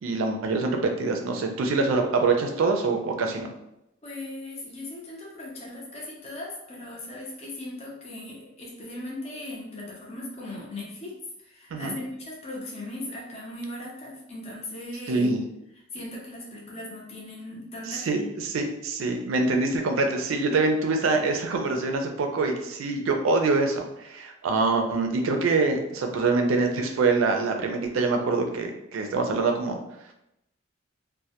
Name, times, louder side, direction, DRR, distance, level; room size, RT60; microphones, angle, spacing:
voice 1, 0.0-3.5 11.7-12.0 15.1-15.4 17.9-29.8, right 3 dB, 85° right, 4 dB, 0.4 m, -25 dB
voice 2, 4.0-15.3 15.7-18.3, left 1 dB, 30° left, -3 dB, 0.5 m, -38 dB
2.1 x 2.1 x 2.8 m, 0.83 s
head